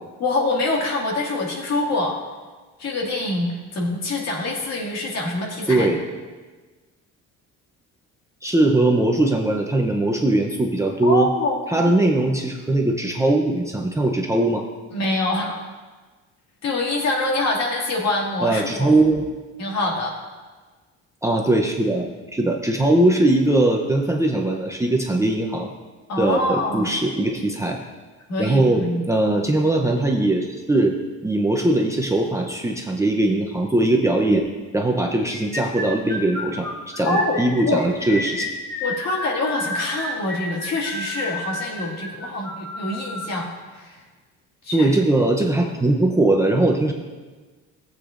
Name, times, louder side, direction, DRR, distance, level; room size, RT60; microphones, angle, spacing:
voice 1, 0.2-2.2 2.8-5.9 11.0-11.9 14.9-15.6 16.6-18.9 19.6-20.2 26.1-26.9 28.3-29.0 37.1-37.4 37.7-37.8 38.8-44.0 44.6-44.9, left 2 dB, 55° left, -2 dB, 2.2 m, -25 dB
voice 2, 5.7-6.0 8.4-11.3 11.7-14.6 18.4-19.3 21.2-22.1 22.3-25.7 26.2-27.8 28.4-31.0 31.2-34.4 34.7-38.5 44.7-46.9, right 2 dB, 10° right, 0 dB, 0.7 m, -20 dB
sound 1, 35.3-43.3, left 1 dB, 15° left, 2.8 m, -31 dB
15.0 x 8.1 x 2.5 m, 1.3 s
cardioid pair, 130°, 31 cm